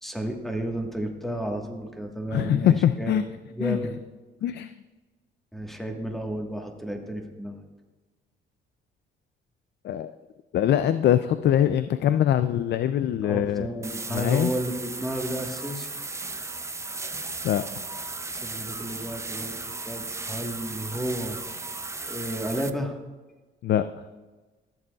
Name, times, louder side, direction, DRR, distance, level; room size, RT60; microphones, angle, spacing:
voice 1, 0.0-3.2 3.5-3.9 5.5-7.6 13.2-15.9 18.4-19.6 19.8-21.4 22.0-23.0, right 1 dB, ahead, 3 dB, 1.4 m, -32 dB
voice 2, 2.3-3.2 3.6-3.8 4.4-4.7 9.8-10.1 10.5-13.7 14.1-14.5 17.4-17.6 23.6-24.0, left 10 dB, 60° left, 12 dB, 0.4 m, -23 dB
sound 1, 13.8-22.7, right 3 dB, 15° right, 0.5 m, -35 dB
14.0 x 7.6 x 2.3 m, 1.2 s
cardioid pair, 90°, 20 cm